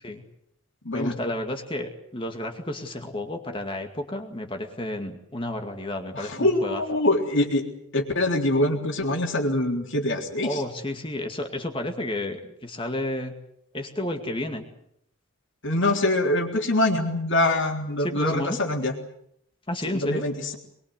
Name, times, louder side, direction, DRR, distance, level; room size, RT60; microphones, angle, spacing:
voice 1, 0.9-6.8 10.4-13.3 13.7-14.7 18.0-18.6 19.7-20.3, left 1 dB, 25° left, 4 dB, 2.2 m, -31 dB
voice 2, 6.1-7.6 7.9-10.6 15.6-18.9 19.9-20.6, left 1 dB, 55° left, 3 dB, 3.6 m, -24 dB
23.0 x 23.0 x 8.1 m, 0.72 s
head